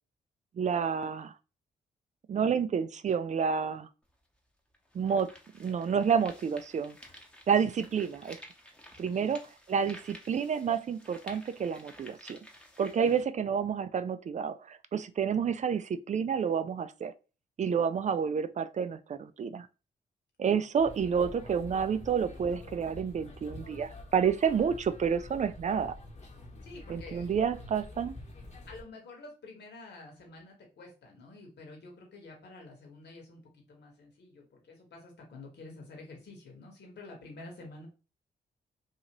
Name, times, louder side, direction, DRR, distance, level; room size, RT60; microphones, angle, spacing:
voice 1, 0.6-1.3 2.3-3.9 4.9-5.3 5.6-7.0 7.5-8.4 9.0-12.4 12.8-17.1 17.6-19.7 20.4-26.0 26.9-28.2, right 7 dB, 40° right, 0.4 m, -29 dB
sound 1, 4.0-4.1 4.7-13.2, equal, 5° left, 0.9 m, -53 dB
voice 2, 8.8-9.3 13.0-13.2 26.6-27.4 28.7-37.9, left 2 dB, 65° left, 1.4 m, -49 dB
sound 2, 20.8-28.8, left 2 dB, 40° left, 1.0 m, -47 dB
2.7 x 2.5 x 3.0 m
hypercardioid pair, 45°, 19 cm